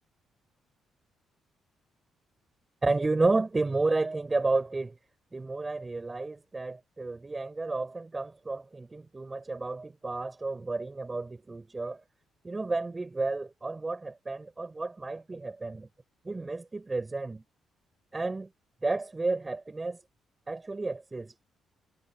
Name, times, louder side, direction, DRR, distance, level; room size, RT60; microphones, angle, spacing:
voice 1, 2.8-5.0 5.3-12.0 12.4-15.9 16.2-17.4 18.1-18.5 18.8-20.0 20.5-21.3, right 3 dB, 20° right, 7.3 m, -31 dB
cardioid pair, 90°, 0 cm